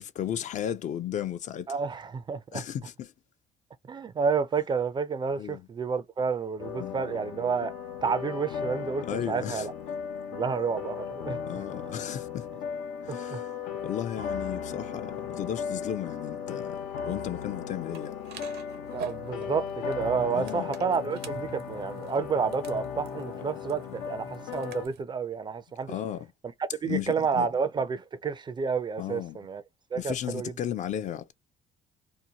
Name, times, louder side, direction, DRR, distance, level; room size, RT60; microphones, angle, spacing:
voice 1, 0.0-1.7 2.5-3.1 5.4-5.6 6.8-7.0 9.0-9.7 11.4-12.5 13.0-13.5 13.8-18.2 20.3-20.7 25.9-26.3 26.9-27.5 29.0-29.4 30.0-31.3, left 10 dB, 45° left, 0.4 m, -34 dB
voice 2, 1.7-2.6 3.9-7.7 8.0-9.7 10.3-11.4 13.1-13.4 18.9-25.9 26.8-29.6 29.9-30.5, right 5 dB, 25° right, 0.4 m, -30 dB
sound 1, 6.6-24.9, left 7 dB, 90° left, 0.6 m, -36 dB
sound 2, 17.9-25.0, right 7 dB, 70° right, 0.6 m, -46 dB
2.7 x 2.1 x 2.8 m
cardioid pair, 110°, 17 cm